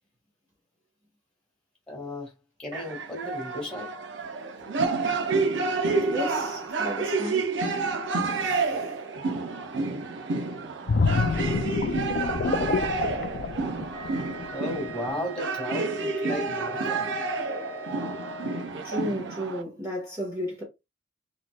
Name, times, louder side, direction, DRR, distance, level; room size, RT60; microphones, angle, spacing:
voice 1, 1.9-2.3 2.6-3.9 14.5-17.1, left 1 dB, 5° left, 1.9 m, -34 dB
sound 1, 2.7-19.6, right 4 dB, 65° right, 0.7 m, -29 dB
voice 2, 6.1-7.5 8.2-8.9 18.8-20.6, equal, 15° right, 1.4 m, -34 dB
sound 2, 10.9-14.5 14.9-15.1, left 4 dB, 50° left, 0.4 m, -27 dB
Wind instrument woodwind instrument, 13.9-18.7, left 1 dB, 30° right, 1.5 m, -41 dB
4.0 x 3.1 x 2.3 m
head